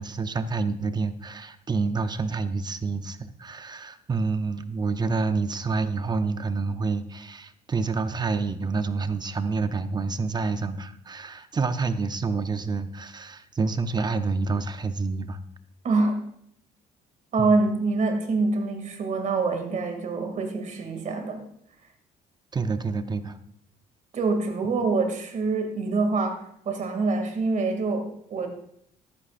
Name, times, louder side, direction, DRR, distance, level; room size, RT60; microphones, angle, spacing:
voice 1, 0.0-15.4 17.4-17.6 22.5-23.4, right 4 dB, 25° right, 10 dB, 0.7 m, -28 dB
voice 2, 15.8-16.2 17.3-21.4 24.1-28.5, right 3 dB, 45° right, 5 dB, 2.4 m, -25 dB
14.0 x 11.5 x 2.5 m, 0.70 s
cardioid pair, 110°, 17 cm